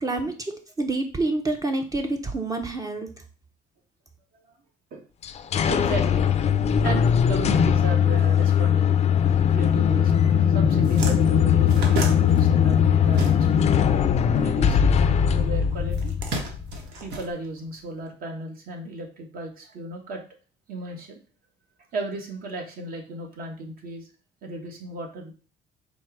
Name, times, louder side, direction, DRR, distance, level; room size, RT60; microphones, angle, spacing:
voice 1, 0.0-3.1, right 2 dB, 20° right, 5 dB, 0.5 m, -27 dB
sound 1, 5.2-16.9, left 8 dB, 40° left, 0.4 m, -20 dB
voice 2, 5.7-6.3 6.8-13.7 14.3-16.1 17.0-20.2 20.7-21.2 21.9-24.1 24.4-25.3, right 2 dB, 60° right, 3 dB, 1.2 m, -35 dB
sound 2, 10.2-10.4 10.6-13.8 14.1-15.2 15.9-17.9, right 3 dB, 85° right, 1.0 m, -33 dB
4.3 x 2.1 x 4.5 m, 0.37 s
cardioid pair, 110°, 17 cm